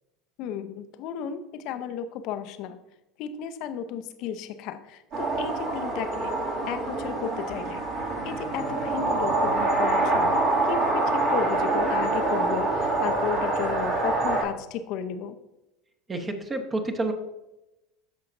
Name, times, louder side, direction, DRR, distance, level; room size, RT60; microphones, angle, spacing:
voice 1, 0.4-2.8 3.2-6.4 6.7-7.8 8.2-15.4, left 8 dB, 55° left, 9 dB, 0.7 m, -34 dB
sound 1, 5.1-14.4, right 2 dB, 50° right, 2.4 m, -25 dB
voice 2, 16.1-17.1, right 2 dB, 25° right, 5 dB, 1.2 m, -29 dB
14.0 x 5.6 x 2.6 m, 0.96 s
hypercardioid pair, 75°, 0 cm